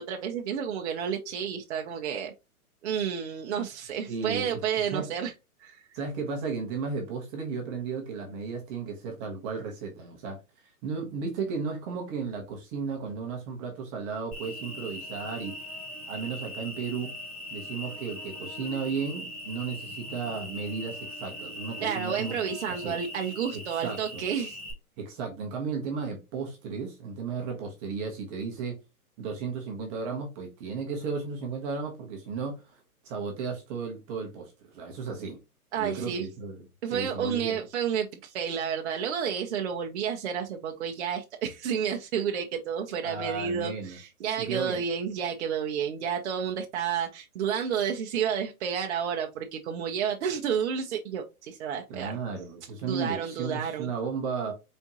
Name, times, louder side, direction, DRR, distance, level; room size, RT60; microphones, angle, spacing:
voice 1, 0.0-2.3 2.8-5.3 5.6-5.8 21.8-24.6 35.7-36.3 36.8-52.2 52.8-53.9, right 7 dB, 50° right, 0.7 m, -31 dB
voice 2, 4.1-4.6 4.9-5.1 5.9-15.6 16.1-17.1 17.5-22.4 22.7-23.0 23.5-24.2 25.0-28.8 29.2-32.8 33.0-35.4 35.8-36.6 36.9-37.6 43.0-44.0 44.4-44.8 51.9-54.5, right 5 dB, 20° right, 0.9 m, -34 dB
Cricket, 14.3-24.7, left 1 dB, 5° left, 2.3 m, -40 dB
4.3 x 3.5 x 2.8 m
hypercardioid pair, 150°, 44 cm